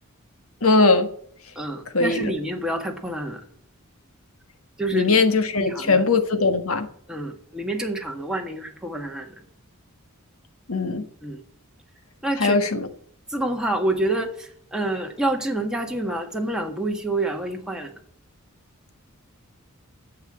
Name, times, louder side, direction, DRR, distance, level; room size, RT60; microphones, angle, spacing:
voice 1, 0.6-1.1 1.9-2.2 4.9-6.9 10.7-11.0 12.4-12.8, left 3 dB, 80° left, 8 dB, 1.5 m, -20 dB
voice 2, 1.6-3.4 4.8-5.2 5.6-6.0 7.1-9.3 11.2-11.4 12.2-12.6 13.3-17.9, right 1 dB, 5° right, 1 dB, 1.7 m, -27 dB
10.5 x 7.9 x 7.6 m, 0.62 s
head